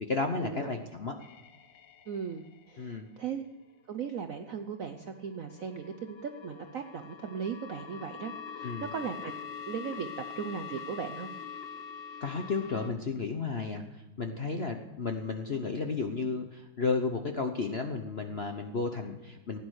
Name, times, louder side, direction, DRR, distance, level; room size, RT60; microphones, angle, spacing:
voice 1, 0.1-1.1 2.8-3.1 8.6-8.9 12.2-13.8 14.2-19.6, left 4 dB, 50° left, 5 dB, 0.8 m, -33 dB
sound 1, 1.2-3.0 3.8-12.9, left 6 dB, 65° left, 1.6 m, -44 dB
voice 2, 2.1-3.4 3.9-9.3 9.7-11.3, right 7 dB, 65° right, 6 dB, 0.8 m, -38 dB
16.0 x 9.8 x 6.4 m, 1.1 s
omnidirectional pair, 2.3 m